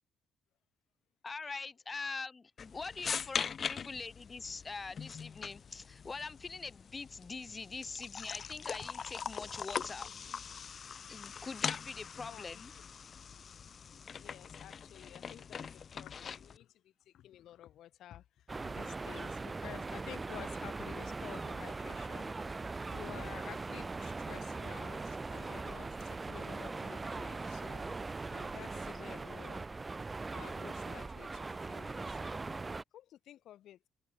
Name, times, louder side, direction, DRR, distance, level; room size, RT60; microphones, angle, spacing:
voice 1, 1.2-10.2 11.1-12.7, left 4 dB, 30° left, 4.1 m, -43 dB
sound 1, 2.6-16.6, left 6 dB, 50° left, 1.6 m, -42 dB
voice 2, 12.1-12.6 14.1-27.8 28.3-29.7 30.3-32.3 32.9-33.8, left 12 dB, 75° left, 6.7 m, -52 dB
sound 2, 18.5-32.8, right 3 dB, 25° right, 4.1 m, -40 dB
cardioid pair, 90°, 0 cm